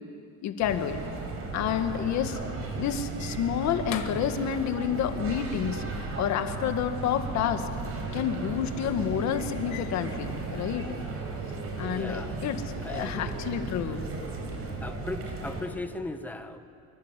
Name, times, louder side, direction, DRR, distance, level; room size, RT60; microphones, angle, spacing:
voice 1, 0.4-1.0 1.5-2.4 2.8-5.8 6.2-7.7 8.1-11.0 11.8-12.6 12.9-14.0, left 9 dB, 45° left, 7 dB, 1.8 m, -29 dB
sound 1, 0.6-15.6, right 3 dB, 40° right, 4.8 m, -35 dB
voice 2, 1.8-2.2 11.9-12.4 12.8-13.5 13.9-14.0 14.8-16.6, left 2 dB, 5° left, 7 dB, 1.0 m, -38 dB
26.5 x 23.5 x 8.4 m, 2.4 s
cardioid pair, 175°, 37 cm